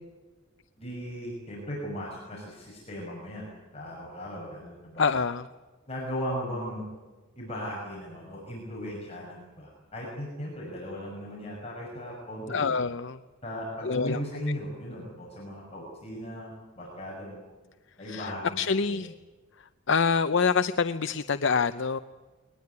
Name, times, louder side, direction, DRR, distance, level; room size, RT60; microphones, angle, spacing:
voice 1, 0.8-3.5 3.7-5.2 5.9-6.9 7.4-12.8 13.4-17.4 18.0-19.0, equal, 30° left, -3 dB, 6.2 m, -37 dB
voice 2, 5.0-5.5 12.5-13.2 13.8-14.2 18.1-19.1 19.9-22.0, left 5 dB, 60° left, 11 dB, 0.6 m, -26 dB
22.0 x 19.5 x 9.5 m, 1.3 s
head